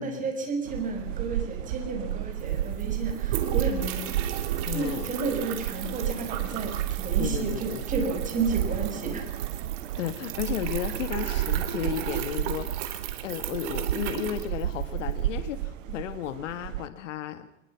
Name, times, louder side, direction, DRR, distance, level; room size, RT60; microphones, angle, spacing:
voice 1, 0.0-4.1 4.4-9.3, right 3 dB, 20° right, 3 dB, 6.1 m, -32 dB
sound 1, 0.6-16.9, right 12 dB, 80° right, 1.0 m, -32 dB
sound 2, 2.1-2.2 2.3-15.1, right 11 dB, 50° right, 3.4 m, -37 dB
voice 2, 4.7-5.1 7.2-7.8 10.0-12.8 13.2-17.5, left 11 dB, 70° left, 11 dB, 1.7 m, -34 dB
24.0 x 21.5 x 5.8 m, 0.81 s
supercardioid pair, 135°, 38 cm